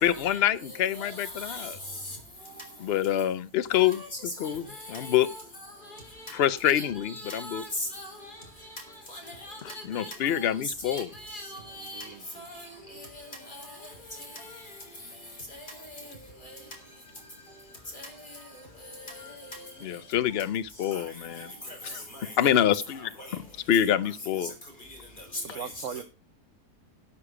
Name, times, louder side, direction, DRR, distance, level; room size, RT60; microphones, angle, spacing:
voice 1, 0.0-1.8 2.8-4.0 4.4-4.6 4.9-5.3 6.3-7.6 9.6-11.1 19.8-21.5 21.8-24.5, left 10 dB, 55° left, 0.7 m, -26 dB
voice 2, 1.0-1.7 3.7-3.9 4.4-5.4 6.7-8.1 9.1-10.1 10.3-10.5 10.8-12.1 12.4-12.7 13.0-13.1 13.6-13.7 18.0-18.1 19.3-19.4 20.9-21.0 21.4-21.5 22.1-22.2 23.2-23.3 25.5-25.6, left 1 dB, 30° left, 4.2 m, -40 dB
voice 3, 22.4-22.7 25.4-26.0, right 8 dB, 60° right, 1.0 m, -39 dB
12.5 x 8.4 x 4.8 m
omnidirectional pair, 1.7 m